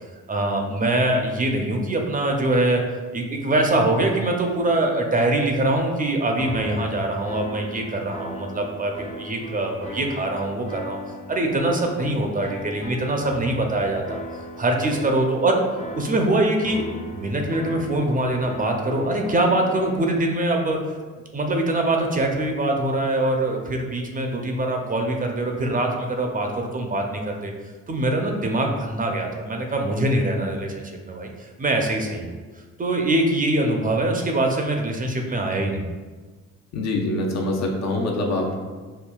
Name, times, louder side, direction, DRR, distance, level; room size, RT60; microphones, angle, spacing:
voice 1, 0.3-2.8 3.1-11.0 11.3-14.2 14.6-15.6 15.9-16.8 17.1-20.8 21.3-27.5 27.9-31.3 31.6-32.3 32.8-35.9, right 1 dB, 30° right, 2 dB, 0.5 m, -23 dB
sound 1, 6.4-20.1, equal, 25° left, 0.6 m, -38 dB
voice 2, 36.7-38.6, left 2 dB, 60° left, 1 dB, 0.7 m, -24 dB
5.5 x 2.2 x 2.3 m, 1.3 s
cardioid pair, 90°, 30 cm